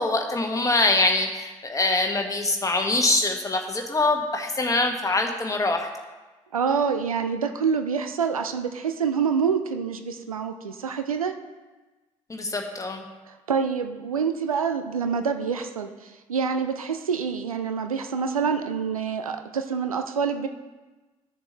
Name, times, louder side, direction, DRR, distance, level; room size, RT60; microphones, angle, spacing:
voice 1, 0.0-5.9 12.3-13.0, left 2 dB, 20° left, 4 dB, 1.4 m, -24 dB
voice 2, 6.5-11.4 13.3-20.5, right 6 dB, 85° right, 7 dB, 0.5 m, -26 dB
14.0 x 6.8 x 3.0 m, 1.2 s
figure-of-eight pair, 50°, 18 cm